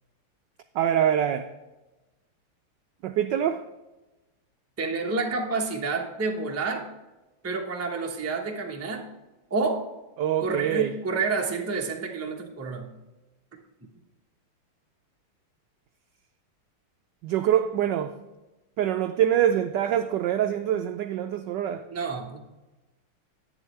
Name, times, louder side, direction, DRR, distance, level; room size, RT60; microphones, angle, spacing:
voice 1, 0.8-1.5 3.0-3.6 10.2-10.9 17.2-18.1 18.8-21.8, right 10 dB, 80° right, 1.0 m, -24 dB
voice 2, 4.8-6.9 7.4-9.1 9.5-9.9 10.4-12.9 21.9-22.4, right 4 dB, 15° right, 0.5 m, -29 dB
11.0 x 9.0 x 3.3 m
omnidirectional pair, 2.4 m